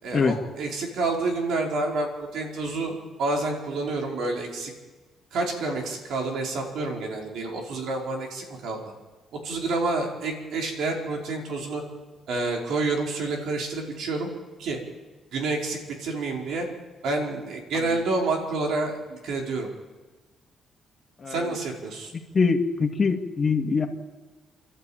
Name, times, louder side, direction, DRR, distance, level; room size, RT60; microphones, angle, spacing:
voice 1, 0.0-4.7 5.3-8.8 9.4-11.8 12.3-14.3 14.6-14.8 15.3-16.7 17.0-19.7 21.3-22.1, right 3 dB, 75° right, 1 dB, 5.0 m, -28 dB
voice 2, 22.3-23.9, left 4 dB, 40° left, 2 dB, 2.2 m, -23 dB
29.0 x 12.5 x 8.9 m, 1.3 s
cardioid pair, 90°, 0 cm